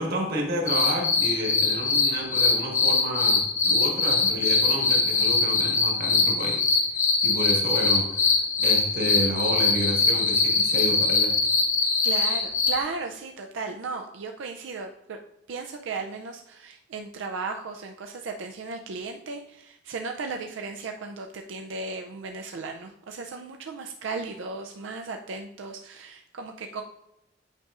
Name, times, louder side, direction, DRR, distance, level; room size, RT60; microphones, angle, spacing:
voice 1, 0.0-6.6 7.2-11.3, equal, 55° right, 0 dB, 1.5 m, -30 dB
sound 1, 0.7-12.8, left 4 dB, 45° left, 1.0 m, -22 dB
voice 2, 12.0-15.2 15.5-26.8, right 4 dB, 90° right, 3 dB, 0.4 m, -35 dB
8.8 x 5.3 x 2.4 m, 0.86 s
head